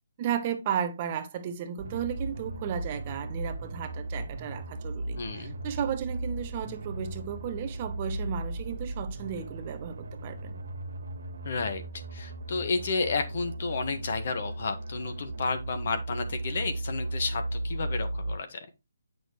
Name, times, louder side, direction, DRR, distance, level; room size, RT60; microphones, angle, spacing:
voice 1, 0.2-10.5, right 8 dB, 25° right, 0.8 m, -34 dB
sound 1, 1.8-18.3, right 2 dB, 75° right, 1.8 m, -36 dB
voice 2, 5.2-5.6 11.4-11.8 12.1-18.7, left 4 dB, 45° left, 1.4 m, -31 dB
8.7 x 6.0 x 3.1 m
hypercardioid pair, 170°, 0 cm